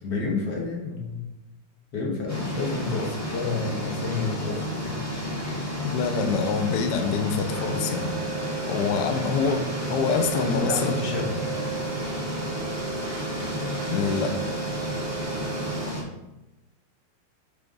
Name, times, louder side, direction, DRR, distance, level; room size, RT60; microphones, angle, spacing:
voice 1, 0.0-1.2 1.9-5.0 10.5-11.3, left 3 dB, 45° left, -2 dB, 1.6 m, -29 dB
sound 1, 2.3-16.0, left 1 dB, 10° left, 1.3 m, -32 dB
voice 2, 5.8-8.1 8.7-11.0 13.9-14.4, left 5 dB, 70° left, 6 dB, 1.0 m, -26 dB
sound 2, 7.5-15.8, right 7 dB, 75° right, 0.6 m, -35 dB
8.3 x 3.4 x 3.9 m, 0.97 s
omnidirectional pair, 2.4 m